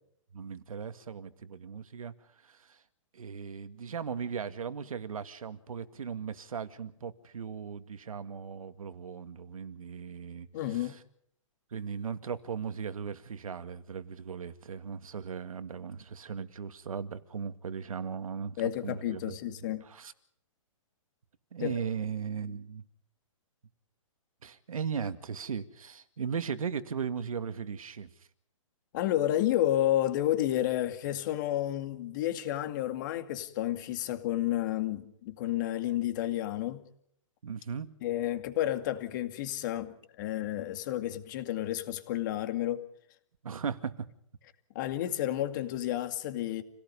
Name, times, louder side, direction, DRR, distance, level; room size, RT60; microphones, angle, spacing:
voice 1, 0.3-2.1 2.4-2.8 3.1-10.9 11.7-18.6 18.8-19.3 19.8-20.1 21.5-22.8 24.4-28.1 37.4-37.9 43.4-43.9, right 6 dB, 90° right, 2.2 m, -37 dB
voice 2, 10.5-11.0 18.6-19.8 21.6-21.7 28.9-36.9 38.0-42.9 44.7-46.6, left 13 dB, 35° left, 2.2 m, -31 dB
29.0 x 18.0 x 5.5 m
hypercardioid pair, 165°, 17 cm